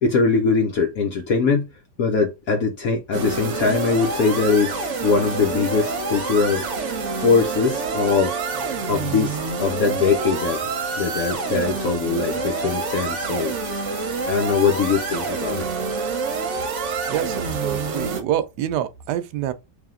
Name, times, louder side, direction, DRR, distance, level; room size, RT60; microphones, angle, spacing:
voice 1, 0.0-1.7 2.0-8.4 8.9-10.7 11.0-13.5 14.3-15.7, left 4 dB, 65° left, 1.1 m, -22 dB
sound 1, 3.1-18.2, right 4 dB, 50° right, 1.1 m, -27 dB
voice 2, 17.1-19.5, right 11 dB, 80° right, 1.2 m, -26 dB
3.4 x 2.8 x 3.7 m
omnidirectional pair, 1.8 m